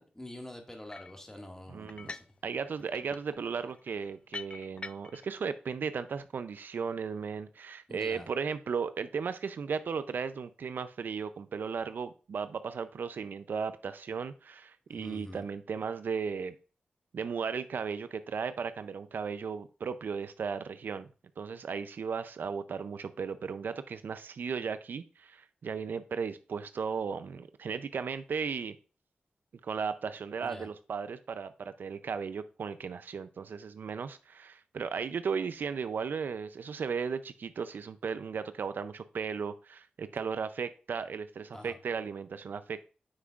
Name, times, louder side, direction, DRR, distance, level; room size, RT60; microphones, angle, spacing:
voice 1, 0.0-2.2 7.9-8.3 14.9-15.4 30.4-30.7 41.5-41.8, left 1 dB, 15° left, 3 dB, 1.9 m, -46 dB
sound 1, 0.9-1.2 1.9-2.4 2.7-5.3, left 3 dB, 35° left, 0.4 m, -45 dB
voice 2, 1.7-2.1 2.4-16.6 17.1-21.1 21.4-28.8 29.6-42.9, right 6 dB, 80° right, 12 dB, 0.5 m, -36 dB
9.5 x 5.8 x 2.4 m, 0.35 s
cardioid pair, 60°, 3 cm